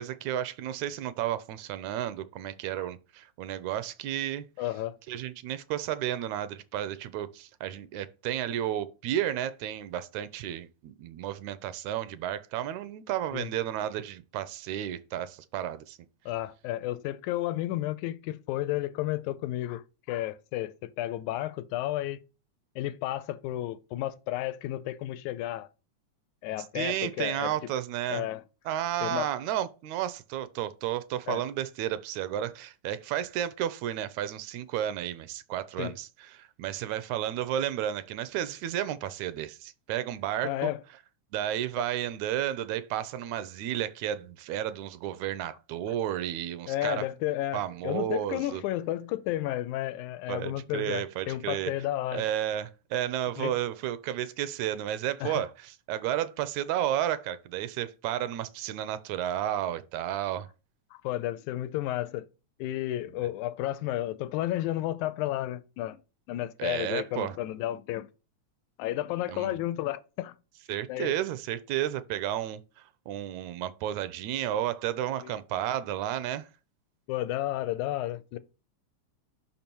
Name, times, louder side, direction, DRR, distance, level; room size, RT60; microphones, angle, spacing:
voice 1, 0.0-4.4 5.1-16.0 26.7-28.2 28.7-36.1 36.4-40.7 41.3-47.0 47.5-48.6 50.3-51.7 52.1-60.5 66.6-67.3 69.3-69.5 70.7-72.6 73.1-76.4, right 11 dB, 80° right, 1.8 m, -32 dB
voice 2, 4.6-5.0 13.3-13.5 16.3-22.2 22.8-25.7 26.4-27.5 28.1-28.4 29.0-29.3 31.3-31.4 35.8-36.0 40.4-40.8 41.8-41.9 46.7-52.2 53.4-53.5 55.2-55.4 60.9-62.3 62.6-66.0 66.3-68.1 68.8-70.3 70.9-71.1 75.2-75.3 77.1-78.4, left 14 dB, 90° left, 2.0 m, -32 dB
5.7 x 5.4 x 4.4 m
omnidirectional pair, 3.4 m